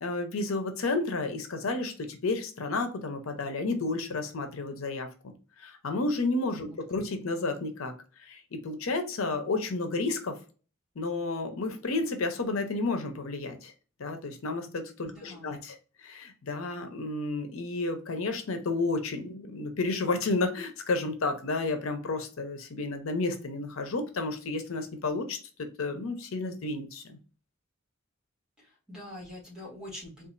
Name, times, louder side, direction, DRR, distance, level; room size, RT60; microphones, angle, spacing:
voice 1, 0.0-5.1 5.6-7.9 8.2-10.4 11.0-13.7 14.0-15.8 16.0-27.2, left 3 dB, 90° left, 7 dB, 0.7 m, -31 dB
voice 2, 15.1-15.6 28.6-30.3, left 1 dB, 5° right, -4 dB, 1.7 m, -44 dB
3.9 x 2.4 x 2.5 m, 0.36 s
head